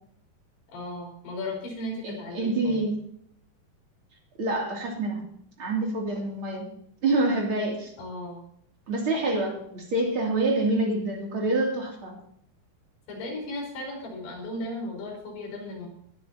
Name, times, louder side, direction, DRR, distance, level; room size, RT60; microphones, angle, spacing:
voice 1, 0.7-2.8 8.0-8.4 13.1-15.9, left 1 dB, 65° left, -2 dB, 6.7 m, -36 dB
voice 2, 2.0-2.9 4.4-5.2 5.6-6.7 7.0-7.9 8.9-12.1, right 2 dB, 35° right, -1 dB, 3.0 m, -26 dB
21.5 x 10.5 x 2.9 m, 0.65 s
omnidirectional pair, 5.1 m